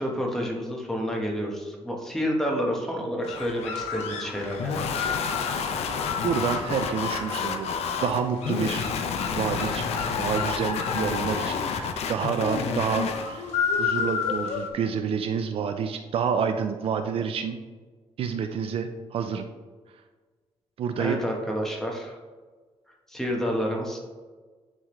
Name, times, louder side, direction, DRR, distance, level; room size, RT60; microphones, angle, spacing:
voice 1, 0.0-5.2 21.0-22.2 23.1-24.0, equal, 5° left, -1 dB, 1.3 m, -29 dB
sound 1, 3.2-14.7, left 6 dB, 90° left, 0.9 m, -33 dB
sound 2, 4.6-13.3, left 5 dB, 70° left, 0.6 m, -29 dB
voice 2, 6.2-7.7 8.0-8.9 9.3-9.8 10.2-13.5 13.8-17.6 18.2-19.5 20.8-21.2, right 6 dB, 60° right, 7 dB, 0.5 m, -28 dB
10.0 x 3.6 x 3.2 m, 1.4 s
cardioid pair, 130°, 11 cm